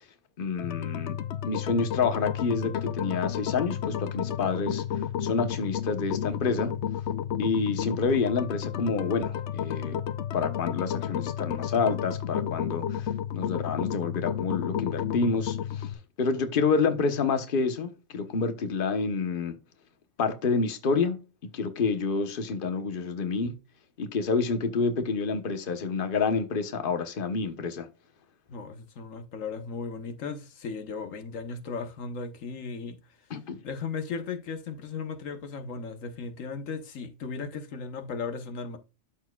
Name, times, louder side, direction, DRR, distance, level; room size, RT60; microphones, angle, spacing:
voice 1, 0.4-1.2 1.4-6.7 7.4-10.0 10.3-15.9 16.2-19.5 20.2-23.5 24.0-27.9 33.3-33.6, left 4 dB, 45° left, 1.2 m, -28 dB
sound 1, 0.6-15.9, left 9 dB, 65° left, 0.9 m, -32 dB
voice 2, 28.5-33.0 33.6-38.8, left 5 dB, 90° left, 1.4 m, -36 dB
12.5 x 4.5 x 2.3 m
omnidirectional pair, 1.3 m